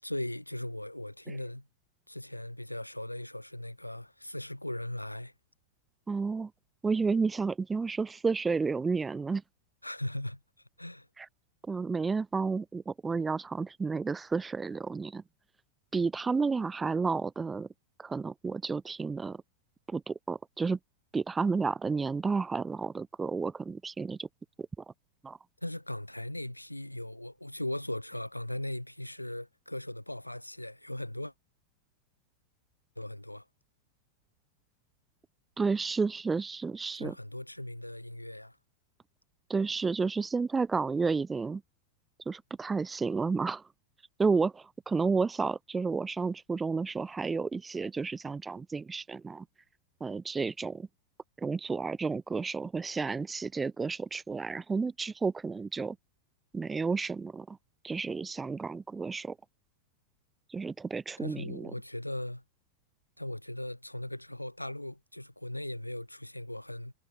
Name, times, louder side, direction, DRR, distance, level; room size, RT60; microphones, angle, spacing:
voice 1, 0.0-1.7 2.1-5.3 9.8-10.4 10.8-11.1 25.6-31.3 33.0-33.4 36.9-38.6 61.2-62.4 63.2-66.9, left 1 dB, 85° left, 5.8 m, -38 dB
voice 2, 6.1-6.5 6.8-9.4 11.2-11.3 11.7-15.2 15.9-17.7 18.0-19.4 19.9-20.8 21.1-24.3 25.2-25.4 35.6-37.1 39.5-41.6 42.2-43.6 44.2-49.4 50.0-50.9 51.4-56.0 56.5-57.6 57.8-59.3 60.5-61.7, right 4 dB, 15° right, 1.6 m, -31 dB
figure-of-eight pair, 90°, 0 cm